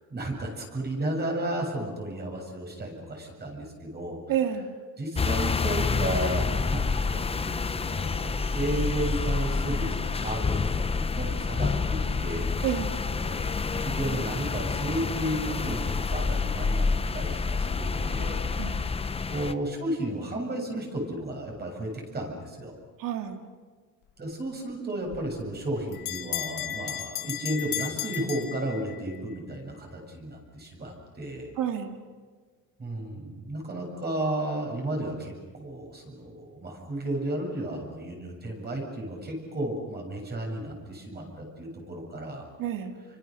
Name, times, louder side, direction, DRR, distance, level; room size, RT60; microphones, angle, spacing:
voice 1, 0.1-4.2 5.0-12.7 13.1-13.4 13.7-16.9 17.1-18.9 19.3-22.7 24.2-31.5 32.8-42.4, right 1 dB, 30° right, 1 dB, 7.6 m, -33 dB
voice 2, 4.3-4.7 12.6-12.9 18.6-18.8 23.0-23.4 31.6-32.0 42.6-42.9, right 9 dB, 70° right, 6 dB, 2.1 m, -29 dB
sound 1, 5.2-19.5, left 4 dB, 15° left, 0.7 m, -28 dB
Bell, 25.1-29.2, left 13 dB, 65° left, 1.8 m, -35 dB
30.0 x 25.0 x 6.7 m, 1.5 s
cardioid pair, 135°, 35 cm